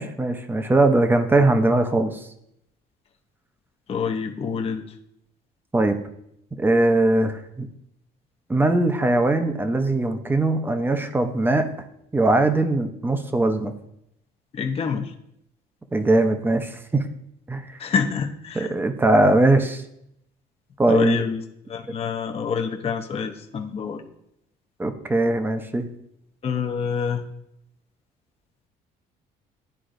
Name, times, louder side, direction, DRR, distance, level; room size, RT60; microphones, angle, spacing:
voice 1, 0.0-2.2 5.7-6.0 6.6-7.7 8.5-11.7 12.1-13.7 15.9-17.0 17.5-17.6 18.5-19.8 20.8-21.2 24.8-25.9, right 2 dB, 10° right, 7 dB, 0.6 m, -20 dB
voice 2, 3.9-4.8 14.5-15.1 17.8-18.7 20.9-21.4 21.7-24.0 26.4-27.2, left 6 dB, 35° left, 3 dB, 0.7 m, -26 dB
11.0 x 3.8 x 2.5 m, 0.77 s
cardioid pair, 110°, 17 cm